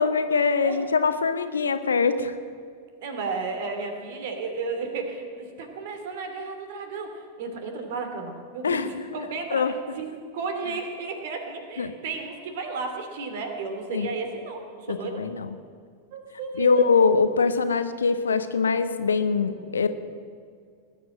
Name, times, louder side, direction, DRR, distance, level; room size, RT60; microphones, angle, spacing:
voice 1, 0.0-2.3 8.6-8.9 9.5-9.7 11.8-11.9 13.9-14.1 14.9-15.5 16.6-19.9, left 5 dB, 70° left, 11 dB, 0.9 m, -23 dB
voice 2, 3.0-8.8 9.1-15.3 16.1-16.8, right 4 dB, 55° right, 5 dB, 2.6 m, -33 dB
19.5 x 9.2 x 7.6 m, 2.2 s
figure-of-eight pair, 90°, 0 cm